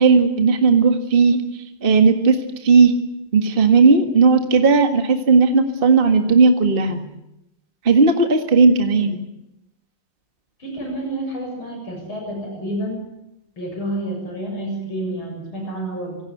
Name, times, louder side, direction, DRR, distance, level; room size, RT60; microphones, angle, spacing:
voice 1, 0.0-2.9 3.3-7.0 7.8-9.2, right 4 dB, 25° right, 5 dB, 1.8 m, -15 dB
voice 2, 10.6-13.0 13.6-16.2, right 1 dB, 70° left, 2 dB, 7.9 m, -29 dB
26.0 x 18.5 x 8.0 m, 0.88 s
omnidirectional pair, 2.4 m